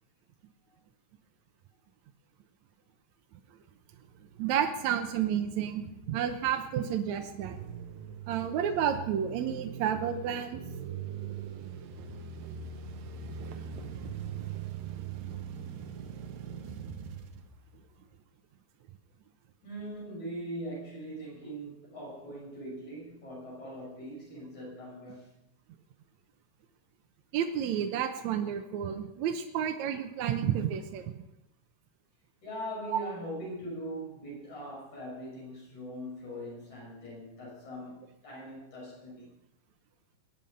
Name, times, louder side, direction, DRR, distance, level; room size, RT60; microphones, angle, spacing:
sound 1, 3.8-18.2, right 7 dB, 90° right, 2.9 m, -42 dB
voice 1, 4.4-7.6 8.3-10.6 27.3-31.2, right 9 dB, 70° right, 5 dB, 2.0 m, -31 dB
voice 2, 19.6-25.3 32.4-39.3, equal, 60° left, -4 dB, 7.7 m, -41 dB
21.5 x 9.1 x 5.4 m, 0.88 s
omnidirectional pair, 3.8 m